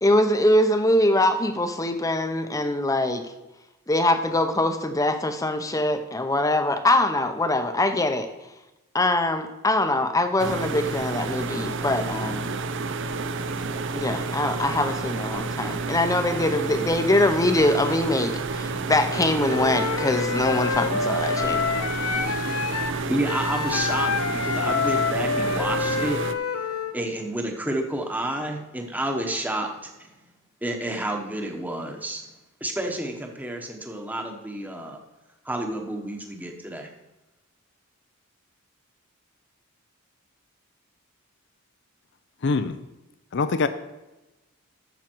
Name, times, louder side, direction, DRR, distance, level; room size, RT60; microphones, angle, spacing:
voice 1, 0.0-3.2 3.9-8.3 8.9-12.5 14.0-21.6 22.2-22.4, left 1 dB, 15° left, 8 dB, 0.8 m, -23 dB
sound 1, 10.4-26.3, right 3 dB, 55° right, 0.6 m, -30 dB
Wind instrument woodwind instrument, 19.5-27.0, left 5 dB, 75° left, 0.8 m, -27 dB
voice 2, 23.0-26.2 26.9-30.1 30.6-32.2 32.6-35.0 35.4-36.9, right 1 dB, 10° right, 3 dB, 1.2 m, -30 dB
voice 3, 42.4-42.8 43.3-43.7, left 4 dB, 55° left, 11 dB, 0.5 m, -23 dB
12.0 x 7.5 x 4.6 m, 1.0 s
head